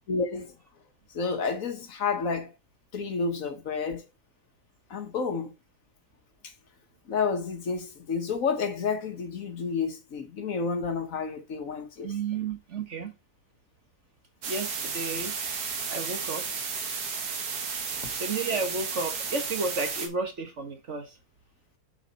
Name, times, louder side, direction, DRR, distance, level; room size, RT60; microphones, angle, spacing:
voice 1, 0.1-0.5 1.1-2.5 2.9-4.1 4.9-5.5 7.1-12.1 18.0-18.1, left 5 dB, 60° left, 1.4 m, -30 dB
voice 2, 12.0-13.1 14.5-15.4 15.9-16.5 18.1-21.2, right 4 dB, 50° right, 1.5 m, -32 dB
sound 1, 14.4-20.1, right 5 dB, 75° right, 1.9 m, -33 dB
7.3 x 5.0 x 4.0 m
omnidirectional pair, 1.7 m